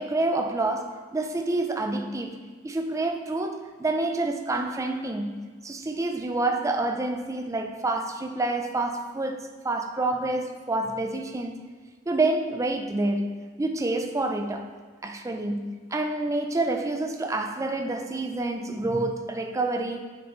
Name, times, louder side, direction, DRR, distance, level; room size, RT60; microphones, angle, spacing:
voice 1, 0.0-2.4 2.6-11.5 12.1-14.7 15.0-20.0, right 2 dB, 15° right, 4 dB, 0.4 m, -28 dB
9.0 x 4.5 x 3.0 m, 1.5 s
head